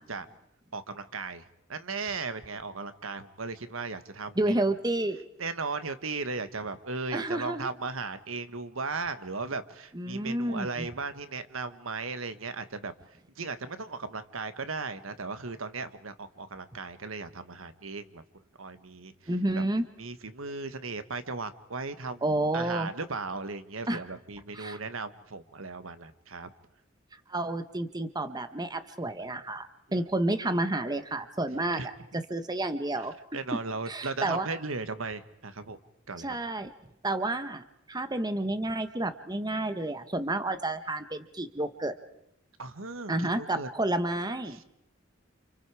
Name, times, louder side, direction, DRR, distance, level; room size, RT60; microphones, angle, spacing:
voice 1, 0.7-1.4 1.7-4.5 5.4-12.9 13.4-18.2 18.6-19.1 19.6-19.7 20.0-22.2 22.5-26.5 31.7-31.9 33.3-35.8 36.1-36.3 42.6-43.7 44.5-44.6, right 4 dB, 85° right, 11 dB, 1.5 m, -36 dB
voice 2, 4.3-5.3 7.1-7.7 9.9-10.9 19.3-19.9 22.2-22.9 23.9-24.0 24.5-24.8 27.3-31.8 32.1-33.1 33.9-34.5 36.2-36.7 37.0-41.9 43.1-44.6, right 2 dB, 20° right, 9 dB, 1.3 m, -30 dB
29.5 x 29.0 x 4.9 m, 0.80 s
head